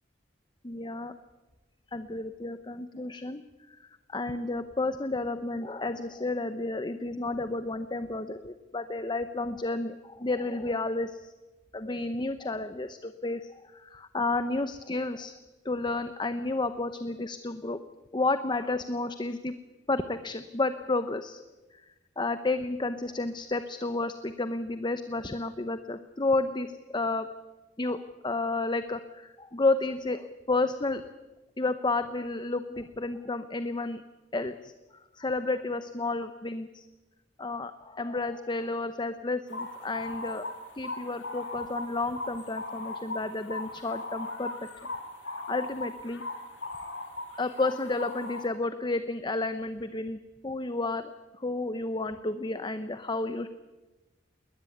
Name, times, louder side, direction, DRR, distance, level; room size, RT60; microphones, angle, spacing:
voice 1, 0.6-1.1 1.9-3.4 3.7-11.3 11.7-15.3 15.6-17.8 18.1-19.5 19.9-21.4 22.2-27.3 27.8-31.0 31.6-34.0 34.3-36.9 37.4-40.4 40.8-44.5 45.5-46.2 47.4-51.1 51.4-53.5, left 2 dB, 25° left, 11 dB, 0.8 m, -31 dB
sound 1, 39.5-48.5, left 2 dB, 85° left, 3.5 m, -38 dB
21.0 x 19.5 x 9.3 m, 1.1 s
head